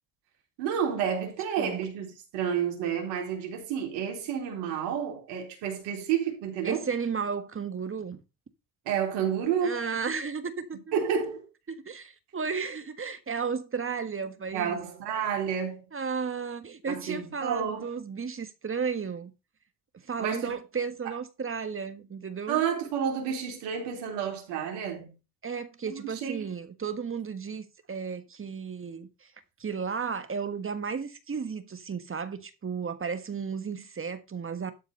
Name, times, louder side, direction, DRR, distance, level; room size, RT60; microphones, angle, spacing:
voice 1, 0.6-6.8 8.9-9.8 10.9-11.5 14.5-15.9 16.9-17.9 20.2-20.5 22.5-25.1 25.9-26.5, right 8 dB, 90° right, 3.8 m, -30 dB
voice 2, 6.6-8.2 9.6-10.8 11.8-14.8 15.9-19.3 20.1-22.6 25.4-29.1 29.6-34.7, right 6 dB, 30° right, 1.6 m, -33 dB
12.5 x 4.7 x 5.4 m
supercardioid pair, 75°, 39 cm